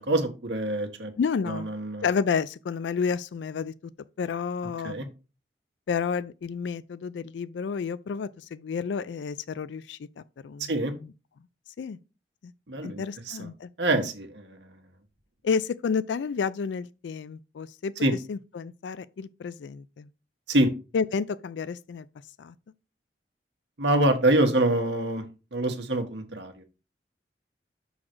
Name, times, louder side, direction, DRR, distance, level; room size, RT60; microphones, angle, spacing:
voice 1, 0.0-1.1 1.4-2.0 4.8-5.1 10.7-10.9 12.7-13.0 13.3-13.5 13.8-14.7 18.0-18.1 20.5-20.7 23.8-25.2 25.5-26.6, right 1 dB, 80° right, 1.4 m, -25 dB
voice 2, 1.2-1.7 2.0-3.7 4.2-5.1 5.9-10.7 11.0-11.1 11.8-12.0 12.4-12.5 12.8-13.7 14.0-14.1 15.4-17.9 18.3-20.1 20.9-22.1 22.4-22.5, left 6 dB, 85° left, 0.4 m, -30 dB
6.3 x 4.0 x 4.5 m
head